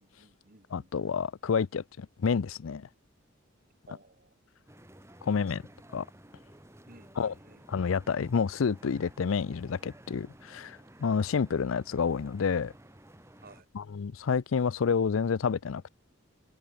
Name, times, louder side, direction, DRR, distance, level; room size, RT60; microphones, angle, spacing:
voice 1, 0.0-0.9 3.9-4.3 6.9-7.6 13.4-13.7, right 2 dB, 45° right, 3.2 m, -56 dB
voice 2, 0.7-2.9 5.2-5.6 5.9-6.1 7.2-7.3 7.7-12.7 13.7-15.9, left 6 dB, 80° left, 0.5 m, -29 dB
sound 1, 4.7-13.6, right 1 dB, 15° right, 4.3 m, -54 dB
head